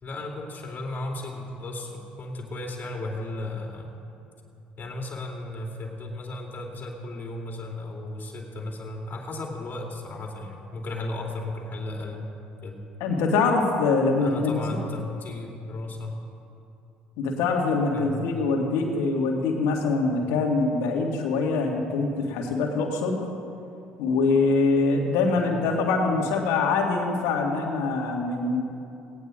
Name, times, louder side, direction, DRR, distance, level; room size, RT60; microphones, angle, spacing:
voice 1, 0.0-3.9 4.8-12.3 12.6-12.8 14.2-16.2 17.9-18.3 25.3-25.6, left 2 dB, 40° left, 0 dB, 2.9 m, -35 dB
voice 2, 13.0-14.6 17.2-23.2 24.0-28.6, left 3 dB, 65° left, 1 dB, 1.9 m, -24 dB
18.0 x 18.0 x 2.5 m, 2.7 s
figure-of-eight pair, 55°, 5 cm